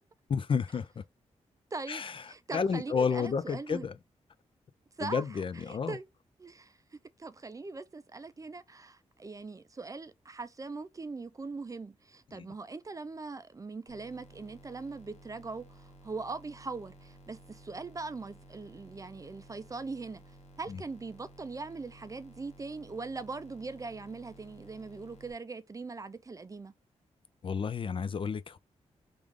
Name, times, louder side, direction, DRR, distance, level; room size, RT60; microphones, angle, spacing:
voice 1, 0.3-1.0 1.9-3.9 5.0-6.0 12.3-12.5 20.7-20.8 27.4-28.6, left 6 dB, 45° left, 0.4 m, -31 dB
voice 2, 1.7-2.0 2.3-3.9 5.0-5.2 5.7-6.0 6.4-6.8 7.2-20.2 20.6-26.7, right 3 dB, 30° right, 0.4 m, -41 dB
sound 1, 13.9-25.3, right 1 dB, 65° left, 0.9 m, -55 dB
3.2 x 2.5 x 3.5 m
cardioid pair, 65°, 12 cm